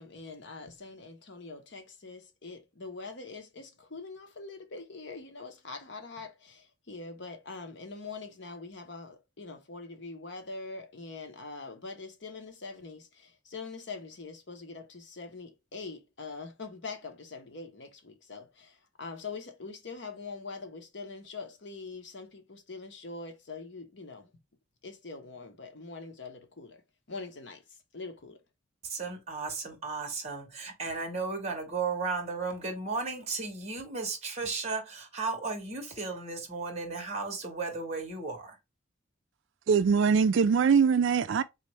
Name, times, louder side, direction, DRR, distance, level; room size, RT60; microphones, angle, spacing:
voice 1, 0.0-24.3 24.8-26.8 27.1-28.4, left 3 dB, 60° left, 1.0 m, -43 dB
voice 2, 28.8-38.6, right 4 dB, 35° right, 1.7 m, -35 dB
voice 3, 39.7-41.4, right 6 dB, 70° right, 0.3 m, -22 dB
4.1 x 3.2 x 3.1 m
head